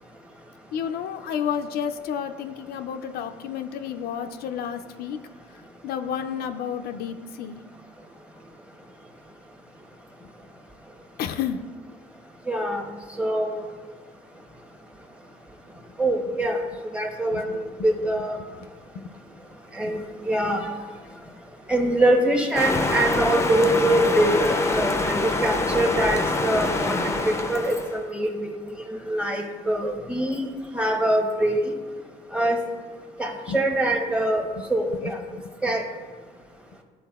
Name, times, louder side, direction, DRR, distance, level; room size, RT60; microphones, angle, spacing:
voice 1, 0.7-5.2 5.8-7.6 11.2-11.6 17.3-17.6 18.9-19.1 33.5-33.6 35.3-35.4, left 8 dB, 70° left, 7 dB, 0.4 m, -31 dB
voice 2, 12.5-12.8 13.2-13.7 16.0-16.6 16.9-18.4 19.8-20.6 21.7-28.5 28.9-30.4 30.7-31.6 32.3-32.6 33.2-34.4 34.7-35.2 35.6-35.8, right 1 dB, 5° right, 3 dB, 0.9 m, -24 dB
sound 1, 22.5-28.0, left 2 dB, 15° left, 0.5 m, -25 dB
11.0 x 4.1 x 2.3 m, 1.4 s
cardioid pair, 110°, 17 cm